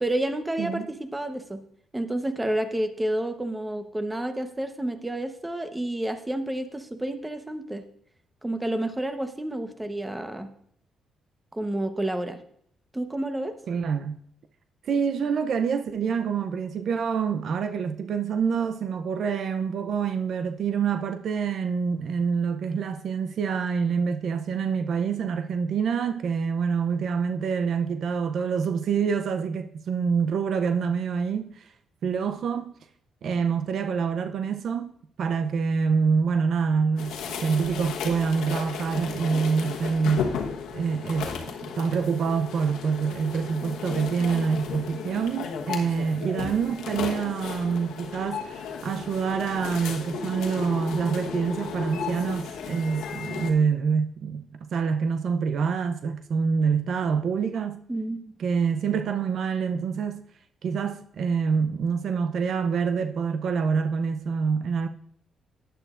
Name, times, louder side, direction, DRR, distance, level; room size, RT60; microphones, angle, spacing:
voice 1, 0.0-1.6 1.9-7.8 8.4-10.5 11.5-12.4 12.9-13.5 57.9-58.3, right 1 dB, 10° right, 1.0 m, -30 dB
voice 2, 0.6-0.9 13.7-14.2 14.8-31.7 32.0-32.7 33.2-40.3 40.7-57.8 58.4-60.2 60.6-64.9, right 6 dB, 65° right, 0.5 m, -26 dB
sound 1, 37.0-53.5, left 6 dB, 85° left, 1.1 m, -34 dB
11.0 x 10.0 x 2.5 m
cardioid pair, 90°, 0 cm